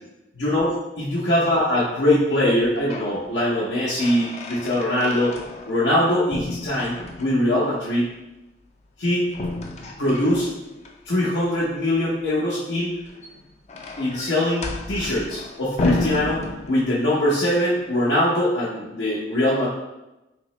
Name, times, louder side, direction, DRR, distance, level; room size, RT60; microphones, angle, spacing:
voice 1, 0.3-5.4 5.7-8.1 9.0-9.3 10.0-10.5 11.0-12.9 14.0-19.7, left 1 dB, 80° left, -8 dB, 0.7 m, -22 dB
sound 1, 2.5-3.2 3.5-6.0 6.3-7.5 9.3-10.9 12.9-17.1, left 2 dB, 40° left, 0.4 m, -31 dB
3.6 x 2.8 x 3.1 m, 0.98 s
head